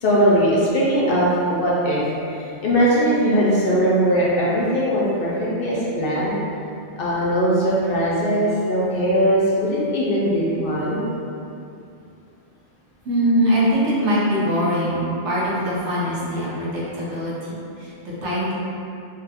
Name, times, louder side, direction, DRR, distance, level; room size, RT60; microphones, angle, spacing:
voice 1, 0.0-2.0 2.3-6.4 7.0-11.1, equal, 60° left, -6 dB, 0.7 m, -20 dB
voice 2, 13.0-18.5, equal, 75° right, -7 dB, 1.1 m, -22 dB
2.8 x 2.3 x 3.3 m, 2.6 s
omnidirectional pair, 1.2 m